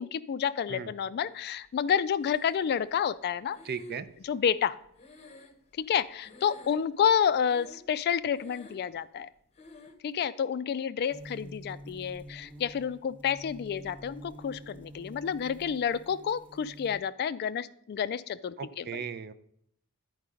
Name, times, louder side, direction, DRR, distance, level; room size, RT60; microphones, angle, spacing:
voice 1, 0.0-3.6 4.2-4.8 5.8-9.3 10.0-19.0, left 8 dB, 45° left, 16 dB, 0.3 m, -29 dB
Breathing, 2.2-2.9 3.5-6.0 6.2-7.0 7.4-8.0 8.3-9.0 9.5-10.0, left 2 dB, 30° left, 0.8 m, -51 dB
voice 2, 3.6-4.1 18.6-19.3, right 6 dB, 45° right, 14 dB, 0.4 m, -36 dB
sound 1, 11.1-17.0, equal, 10° right, 0.9 m, -47 dB
9.6 x 4.7 x 5.0 m, 0.68 s
head